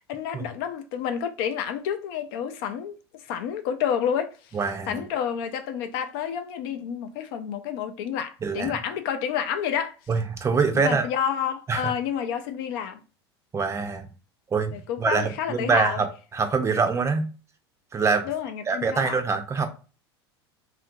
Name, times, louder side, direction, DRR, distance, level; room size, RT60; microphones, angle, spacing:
voice 1, 0.1-3.0 3.3-4.6 4.9-10.0 10.7-13.0 14.7-16.0 18.2-19.2, left 8 dB, 55° left, 0.5 m, -29 dB
voice 2, 4.5-5.0 8.4-8.8 10.1-11.1 11.7-11.9 13.5-14.1 14.5-16.1 16.3-17.3 17.9-18.3 18.7-19.7, right 5 dB, 20° right, 0.5 m, -24 dB
2.8 x 2.5 x 2.5 m
hypercardioid pair, 85°, 14 cm